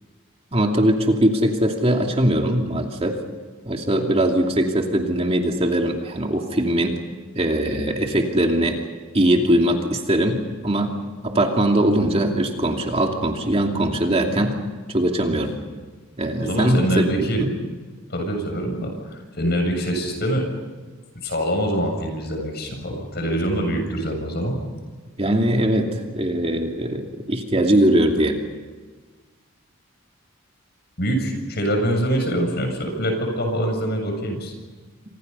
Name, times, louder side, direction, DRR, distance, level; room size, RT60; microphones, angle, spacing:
voice 1, 0.5-3.2 3.7-7.0 7.3-8.8 9.1-10.9 11.2-14.6 14.9-15.5 16.2-17.5 25.2-28.4, right 1 dB, 30° right, 2 dB, 2.7 m, -21 dB
voice 2, 16.4-17.4 18.1-20.5 21.2-24.6 31.0-34.5, right 1 dB, 50° left, 4 dB, 7.4 m, -24 dB
29.5 x 26.0 x 5.6 m, 1.4 s
head